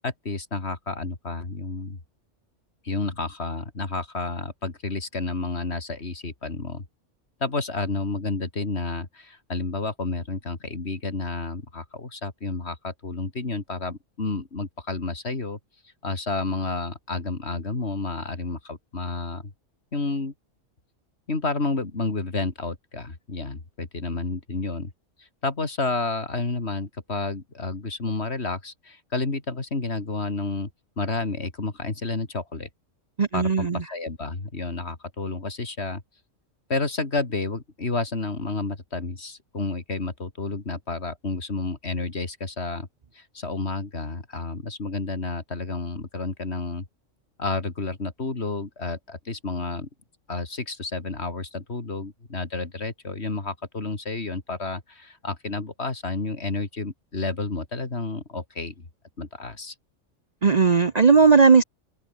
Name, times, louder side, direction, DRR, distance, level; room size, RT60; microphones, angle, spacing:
voice 1, 0.0-2.0 2.8-6.8 7.4-15.6 16.0-19.4 19.9-20.3 21.3-24.9 25.4-30.7 31.0-32.7 33.3-36.0 36.7-42.9 43.1-46.8 47.4-49.9 50.3-58.8 59.2-59.7, left 3 dB, 55° left, 3.1 m, -30 dB
voice 2, 33.2-33.8 60.4-61.6, right 5 dB, 35° right, 0.8 m, -17 dB
open air
omnidirectional pair, 1.3 m